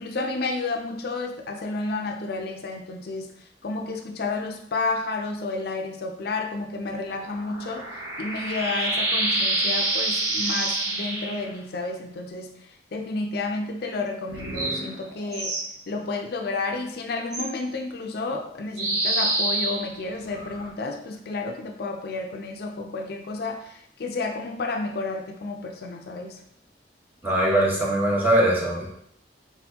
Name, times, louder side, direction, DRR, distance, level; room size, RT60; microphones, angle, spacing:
voice 1, 0.0-15.6 15.9-26.4, left 3 dB, 60° left, 3 dB, 0.5 m, -31 dB
sound 1, 7.0-11.5 14.3-15.7 17.3-17.4 18.8-20.7, right 2 dB, 80° right, 1.4 m, -27 dB
voice 2, 27.2-28.9, right 1 dB, 10° right, -4 dB, 1.1 m, -21 dB
4.3 x 4.0 x 2.8 m, 0.71 s
head